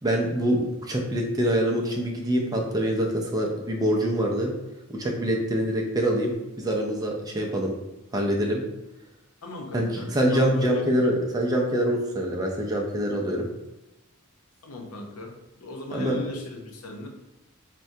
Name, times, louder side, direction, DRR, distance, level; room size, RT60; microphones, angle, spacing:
voice 1, 0.0-4.5 4.9-7.7 8.1-8.6 9.7-13.5 15.9-16.2, equal, 15° right, 0 dB, 0.4 m, -25 dB
voice 2, 9.4-10.8 14.6-17.1, left 1 dB, 80° left, 1 dB, 0.7 m, -38 dB
4.5 x 2.2 x 2.7 m, 0.98 s
head